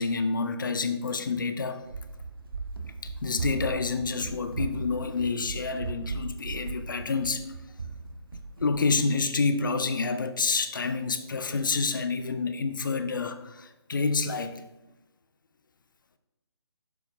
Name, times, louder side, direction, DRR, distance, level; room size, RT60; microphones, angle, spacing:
voice 1, 0.0-1.8 3.0-7.5 8.3-14.6, left 4 dB, 45° left, 9 dB, 0.5 m, -28 dB
Run, 1.8-8.9, right 4 dB, 55° right, 0.5 m, -37 dB
7.0 x 6.2 x 3.0 m, 0.98 s
figure-of-eight pair, 145°, 14 cm